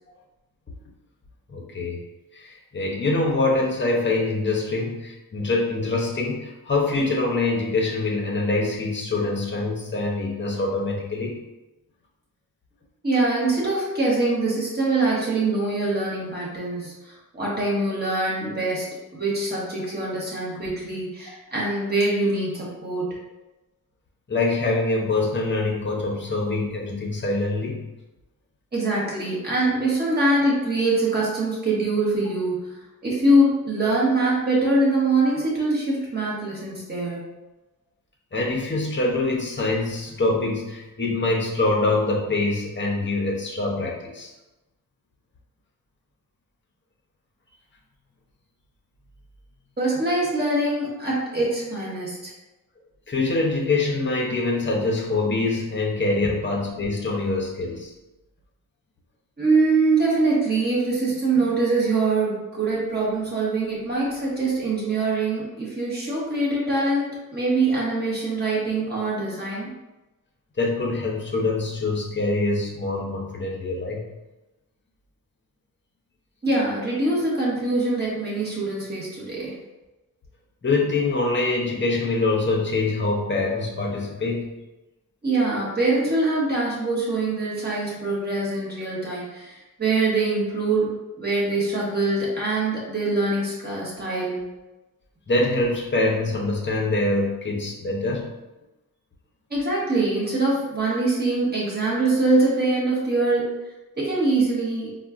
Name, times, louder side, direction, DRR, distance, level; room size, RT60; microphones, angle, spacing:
voice 1, 1.5-2.0 2.3-11.4 24.3-28.0 38.3-44.3 53.1-57.9 70.6-74.1 80.6-84.5 95.3-98.3, left 2 dB, 30° left, -2 dB, 0.7 m, -24 dB
voice 2, 13.0-18.9 19.1-23.1 28.7-32.7 33.0-37.3 49.8-52.3 59.4-69.7 76.4-79.5 85.2-90.9 91.2-94.4 99.5-103.5 104.0-105.0, right 2 dB, 30° right, -6 dB, 1.1 m, -23 dB
4.1 x 2.2 x 2.4 m, 1.0 s
wide cardioid pair, 110°, 35 cm